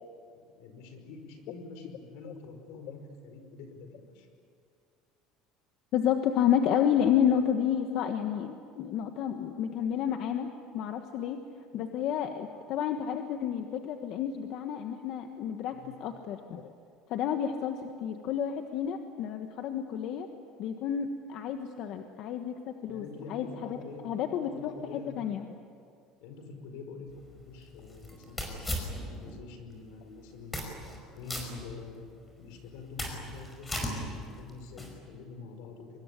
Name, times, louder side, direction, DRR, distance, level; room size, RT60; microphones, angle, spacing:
voice 1, 0.3-4.3 15.7-15.9 22.9-25.5 26.2-30.7 31.1-32.1 32.4-36.0, left 4 dB, 80° left, 7 dB, 4.9 m, -46 dB
voice 2, 5.9-10.5 10.7-11.4 11.7-16.6 17.1-20.3 20.6-25.4, left 9 dB, 55° left, 6 dB, 1.4 m, -30 dB
sound 1, 27.1-29.4 29.8-29.9 30.4-31.0 31.3-32.2 32.6-35.0, left 1 dB, 15° left, 5.3 m, -37 dB
24.5 x 21.0 x 10.0 m, 2.3 s
cardioid pair, 155°, 0 cm